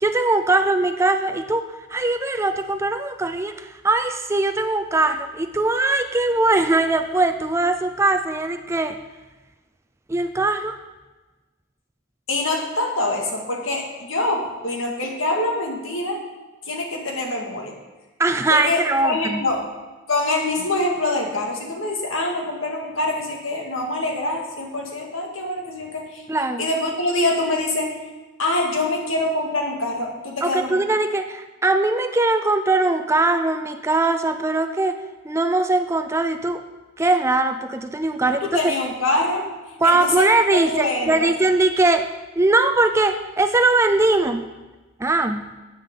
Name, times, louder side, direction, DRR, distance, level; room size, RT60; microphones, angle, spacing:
voice 1, 0.0-9.0 10.1-10.8 18.2-19.5 26.3-26.6 30.4-36.6 37.0-38.6 39.8-42.1 42.4-44.4 45.0-45.5, right 2 dB, 15° right, 8 dB, 0.4 m, -21 dB
voice 2, 12.3-16.2 16.7-17.8 18.5-19.6 20.1-26.2 26.6-28.0 28.4-30.8 38.4-39.4 39.8-40.3 40.7-41.3, left 2 dB, 75° left, 1 dB, 2.0 m, -24 dB
12.0 x 9.0 x 3.7 m, 1.2 s
head